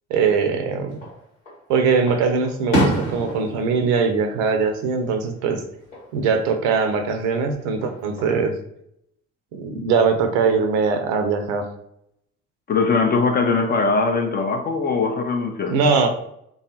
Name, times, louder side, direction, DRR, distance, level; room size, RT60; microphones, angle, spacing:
voice 1, 0.1-1.0 1.7-5.6 6.1-8.5 9.5-11.7 15.7-16.1, right 5 dB, 65° right, 0.6 m, -21 dB
Fireworks, 0.9-1.6 2.1-5.2 5.5-6.1 7.6-8.4, equal, 85° left, 0.9 m, -27 dB
voice 2, 12.7-15.8, left 4 dB, 25° left, 0.4 m, -21 dB
3.4 x 2.3 x 2.8 m
figure-of-eight pair, 50°, 38 cm